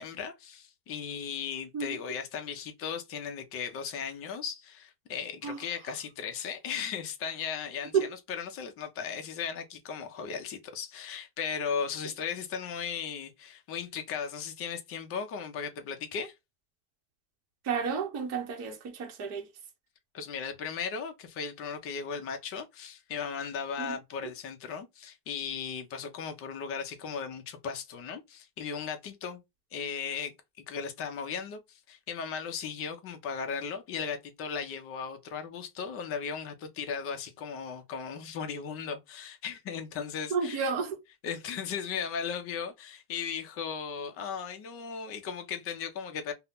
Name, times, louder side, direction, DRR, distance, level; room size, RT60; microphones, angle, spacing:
voice 1, 0.0-16.3 20.1-29.4 29.7-30.3 30.7-40.7 41.2-46.3, left 6 dB, 30° left, 0.4 m, -36 dB
voice 2, 17.6-19.5 23.8-24.0 24.2-24.3 40.3-41.0, right 6 dB, 35° right, 0.7 m, -31 dB
2.7 x 2.0 x 3.3 m
cardioid pair, 155°, 46 cm